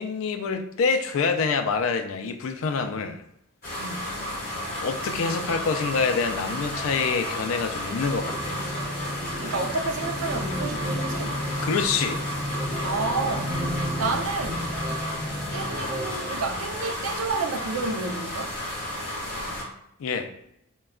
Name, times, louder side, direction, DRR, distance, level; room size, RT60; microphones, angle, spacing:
voice 1, 0.0-3.2 4.8-8.6 11.6-12.2 20.0-20.3, left 5 dB, 70° left, 0.3 m, -26 dB
sound 1, 3.6-19.6, equal, 40° left, 1.1 m, -33 dB
voice 2, 3.8-4.1 9.4-11.4 12.8-13.5 14.0-14.7 15.5-18.6, right 3 dB, 75° right, 0.4 m, -30 dB
sound 2, 6.7-16.8, left 2 dB, 10° left, 0.9 m, -47 dB
sound 3, 8.3-17.0, equal, 20° right, 0.5 m, -33 dB
2.2 x 2.2 x 3.5 m
head